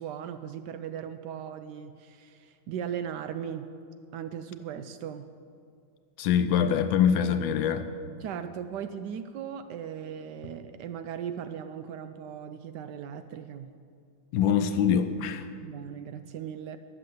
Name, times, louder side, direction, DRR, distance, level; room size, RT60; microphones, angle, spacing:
voice 1, 0.0-3.7 4.1-5.3 8.2-13.8 15.6-16.8, right 8 dB, 85° right, 10 dB, 0.9 m, -38 dB
voice 2, 6.2-7.9 14.3-15.5, left 8 dB, 70° left, 9 dB, 1.3 m, -24 dB
12.5 x 7.6 x 7.8 m, 2.2 s
omnidirectional pair, 2.4 m